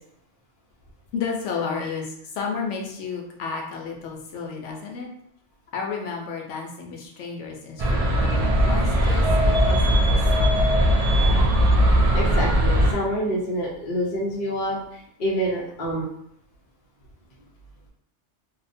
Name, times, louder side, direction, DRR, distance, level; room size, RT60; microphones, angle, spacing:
voice 1, 1.1-5.1 5.7-10.7, left 5 dB, 85° left, 0 dB, 0.9 m, -32 dB
sound 1, 7.8-12.9, equal, 60° right, 0.4 m, -19 dB
voice 2, 12.1-16.1, equal, 50° left, -5 dB, 0.8 m, -27 dB
2.7 x 2.0 x 2.5 m, 0.71 s
omnidirectional pair, 1.2 m